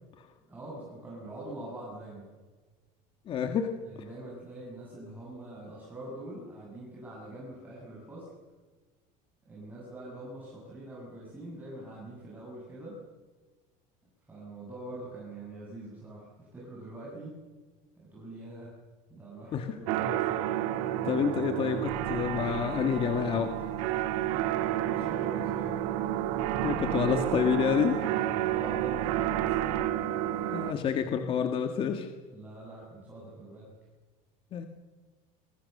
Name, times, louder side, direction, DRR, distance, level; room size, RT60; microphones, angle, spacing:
voice 1, 0.5-2.3 3.8-8.3 9.5-13.0 14.3-17.4 18.0-18.8 19.1-20.5 24.2-25.8 28.0-29.6 32.3-33.7, right 1 dB, 10° right, -5 dB, 7.5 m, -44 dB
voice 2, 3.3-3.8 19.5-19.8 21.0-23.7 26.6-28.2 30.5-32.1 34.5-34.7, left 7 dB, 30° left, 5 dB, 1.7 m, -28 dB
sound 1, 19.9-30.7, right 12 dB, 80° right, 2.2 m, -30 dB
29.5 x 23.5 x 6.7 m, 1.3 s
cardioid pair, 170°, 17 cm